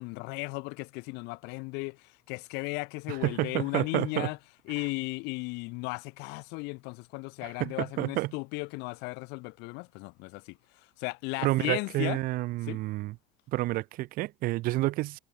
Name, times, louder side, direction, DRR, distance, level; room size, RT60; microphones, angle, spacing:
voice 1, 0.0-4.4 4.7-12.2 12.6-12.8, left 28 dB, 55° left, 1.6 m, -36 dB
voice 2, 3.1-4.3 7.6-8.3 11.4-13.1 13.5-15.2, right 18 dB, 45° right, 2.2 m, -29 dB
cardioid pair, 160°, 20 cm